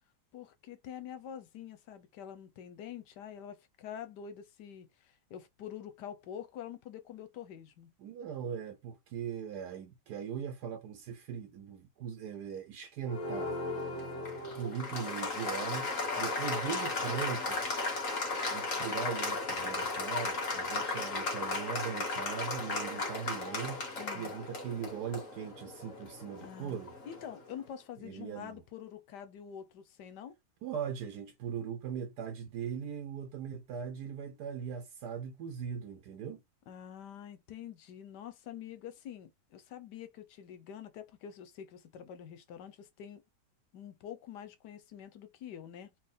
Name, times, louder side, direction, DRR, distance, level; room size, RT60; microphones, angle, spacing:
voice 1, 0.3-7.9 24.0-24.3 26.4-26.8 27.0-30.3 36.7-43.2 43.7-45.9, left 9 dB, 85° left, 1.4 m, -46 dB
voice 2, 8.0-13.6 14.5-17.6 18.5-23.8 24.1-26.9 28.0-28.6 30.6-36.4, right 7 dB, 75° right, 1.3 m, -40 dB
Applause, 13.1-27.4, left 3 dB, 55° left, 2.0 m, -35 dB
4.5 x 2.6 x 3.5 m
omnidirectional pair, 1.8 m